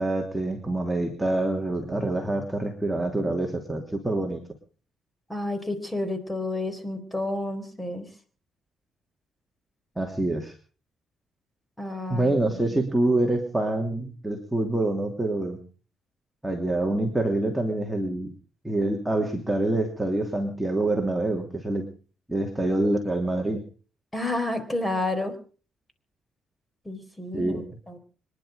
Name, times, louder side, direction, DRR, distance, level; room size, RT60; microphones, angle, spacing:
voice 1, 0.0-4.4 10.0-10.5 12.1-15.6 16.4-18.3 18.6-21.9 22.3-23.6 27.3-27.6, right 2 dB, 5° right, 1 dB, 2.9 m, -26 dB
voice 2, 5.3-8.1 11.8-12.8 24.1-25.4 26.8-28.0, left 2 dB, 10° left, 10 dB, 4.1 m, -30 dB
25.5 x 11.0 x 5.1 m, 0.39 s
cardioid pair, 90°, 0 cm